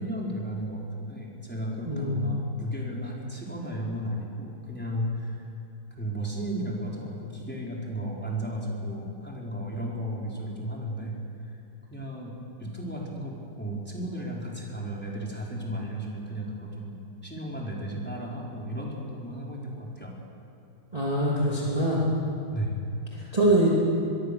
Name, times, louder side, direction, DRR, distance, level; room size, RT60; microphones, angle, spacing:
voice 1, 0.0-5.5 6.0-11.2 11.9-20.1 22.5-22.9 23.2-23.4, equal, 5° left, -3 dB, 4.1 m, -34 dB
voice 2, 1.9-2.3 20.9-22.0 23.1-23.7, right 1 dB, 15° right, -5 dB, 2.9 m, -24 dB
24.5 x 22.5 x 6.8 m, 2.6 s
omnidirectional pair, 2.3 m